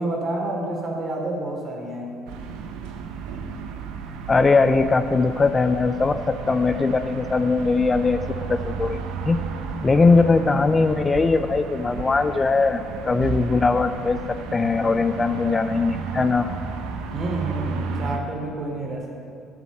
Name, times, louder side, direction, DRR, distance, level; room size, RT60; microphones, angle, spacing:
voice 1, 0.0-2.1 17.1-19.1, right 2 dB, 40° right, -1 dB, 3.4 m, -29 dB
sound 1, 2.3-18.2, right 5 dB, 75° right, 1.0 m, -33 dB
voice 2, 4.3-8.2 8.5-9.4 9.8-14.2 14.5-16.5, left 4 dB, 30° left, 9 dB, 0.5 m, -20 dB
11.0 x 7.3 x 7.6 m, 2.4 s
supercardioid pair, 70°, 0 cm